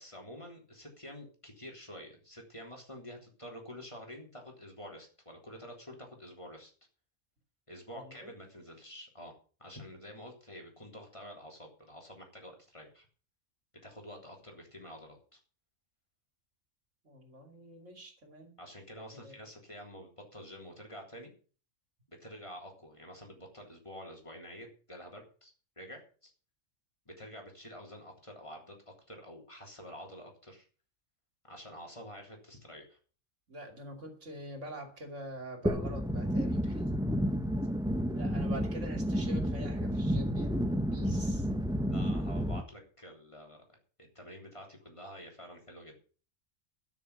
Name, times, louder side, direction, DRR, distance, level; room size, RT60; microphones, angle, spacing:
voice 1, 0.0-6.7 7.7-9.3 9.6-13.1 13.8-15.4 18.6-21.3 22.1-25.5 25.8-26.3 27.0-30.7 31.4-33.0 41.9-43.6 44.0-46.0, equal, 25° left, 1 dB, 3.5 m, -48 dB
voice 2, 7.9-8.3 17.0-18.6 19.1-19.3 33.5-36.8 38.1-40.6 40.9-41.5, right 1 dB, 65° right, 4 dB, 3.1 m, -45 dB
sound 1, 35.7-42.6, equal, 5° right, 1.0 m, -31 dB
13.0 x 6.3 x 8.2 m, 0.39 s
omnidirectional pair, 1.3 m